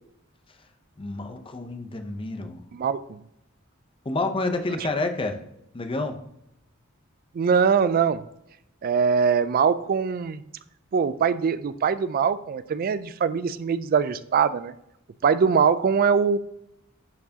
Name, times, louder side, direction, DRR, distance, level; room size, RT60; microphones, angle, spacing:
voice 1, 1.0-2.6 4.0-5.4 5.7-6.2, left 2 dB, 25° left, 7 dB, 0.6 m, -29 dB
voice 2, 2.7-3.2 7.3-8.2 8.8-10.4 10.9-14.7 15.2-16.4, right 6 dB, 45° right, 15 dB, 0.3 m, -22 dB
10.5 x 4.5 x 2.8 m, 0.79 s
head